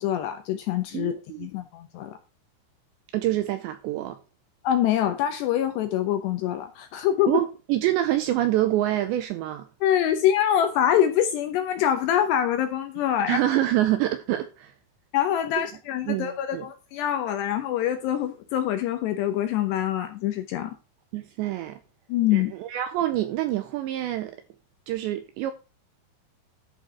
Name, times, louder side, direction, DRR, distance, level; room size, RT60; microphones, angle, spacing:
voice 1, 0.0-2.2 4.6-7.4 9.8-13.4 15.1-20.7 22.1-22.5, left 10 dB, 75° left, 2.6 m, -25 dB
voice 2, 0.9-1.5 3.1-4.2 7.3-9.7 13.3-14.7 15.6-15.7 16.1-16.7 21.1-21.8 22.3-24.4 24.9-25.5, right 13 dB, 80° right, 2.6 m, -26 dB
11.0 x 5.5 x 5.7 m
omnidirectional pair, 5.8 m